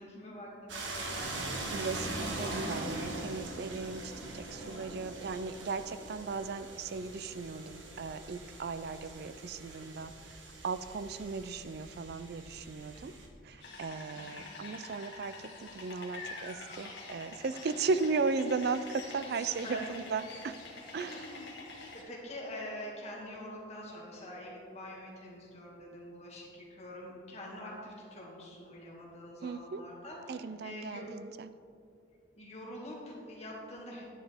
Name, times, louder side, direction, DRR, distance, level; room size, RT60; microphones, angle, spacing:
voice 1, 0.0-1.3 4.4-4.9 12.8-13.0 13.5-13.8 14.2-14.6 18.9-20.1 20.9-21.5 21.8-31.1 32.4-34.0, left 1 dB, 35° left, -4 dB, 2.1 m, -46 dB
sound 1, 0.7-13.3, right 2 dB, 85° right, 1.4 m, -42 dB
voice 2, 1.7-10.1 10.6-13.1 13.4-20.6 20.9-21.2 29.4-29.8 30.3-31.5, right 4 dB, 55° right, 13 dB, 0.4 m, -36 dB
sound 2, 13.6-22.0, left 3 dB, 70° left, 2.0 m, -46 dB
10.0 x 9.4 x 3.5 m, 2.4 s
head